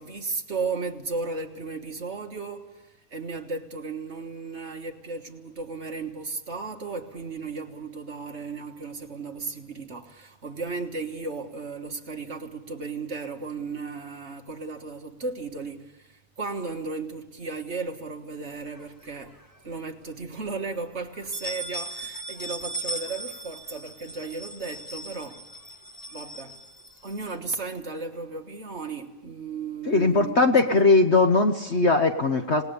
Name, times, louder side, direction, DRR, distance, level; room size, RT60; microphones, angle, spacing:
voice 1, 0.0-19.4 19.6-25.4 26.1-26.6 27.0-30.4, right 4 dB, 40° right, 1.7 m, -35 dB
sound 1, 18.7-19.6 20.0-20.1 20.4-20.5 21.1-27.3, right 1 dB, 15° left, 1.2 m, -38 dB
voice 2, 29.8-32.6, left 3 dB, 45° left, 1.2 m, -20 dB
27.0 x 19.0 x 7.0 m
omnidirectional pair, 1.9 m